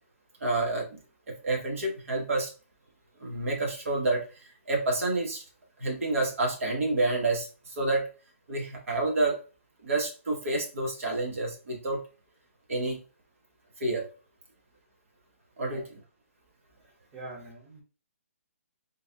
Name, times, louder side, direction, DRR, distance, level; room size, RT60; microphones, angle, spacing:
voice 1, 0.4-0.8 1.3-2.5 3.2-4.2 4.7-5.4 5.8-7.4 7.8-8.1 8.5-9.3 9.8-12.0 12.7-13.0 13.8-14.0 15.6-15.8, right 2 dB, 65° right, 0 dB, 1.6 m, -28 dB
voice 2, 17.1-17.8, right 1 dB, 20° right, -4 dB, 1.2 m, -43 dB
3.9 x 2.4 x 4.0 m, 0.34 s
hypercardioid pair, 160°, 8 cm